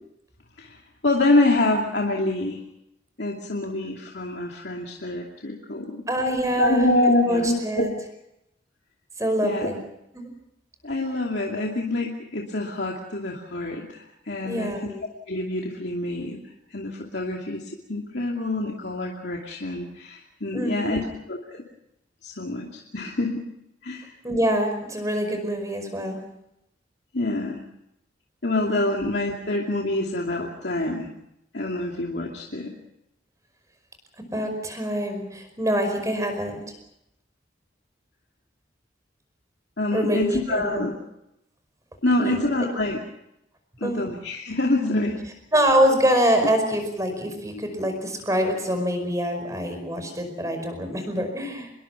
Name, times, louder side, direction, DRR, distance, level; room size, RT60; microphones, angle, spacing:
voice 1, 0.6-2.6 3.2-6.0 6.5-7.8 9.4-9.7 10.8-14.7 15.3-16.4 16.7-21.0 21.3-21.6 22.2-23.4 23.8-24.1 27.1-27.6 28.4-31.1 31.5-32.7 39.8-40.9 42.0-43.0 43.8-45.2, left 2 dB, 65° left, -1 dB, 2.6 m, -26 dB
voice 2, 6.1-7.9 9.2-9.8 10.1-10.3 14.4-15.0 20.5-21.0 24.2-26.2 28.6-28.8 34.3-36.6 39.9-40.9 42.2-42.4 43.8-44.0 45.5-51.7, equal, 15° right, 6 dB, 5.2 m, -25 dB
26.0 x 21.5 x 5.8 m, 0.82 s
head